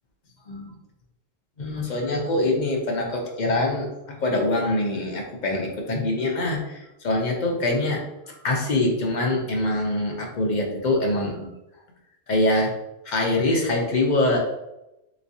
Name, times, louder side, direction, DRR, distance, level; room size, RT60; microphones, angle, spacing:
voice 1, 1.6-3.9 4.2-8.0 8.4-11.5 12.3-12.7 13.1-14.4, left 2 dB, 50° left, 0 dB, 0.6 m, -24 dB
3.4 x 3.1 x 2.7 m, 0.92 s
omnidirectional pair, 1.3 m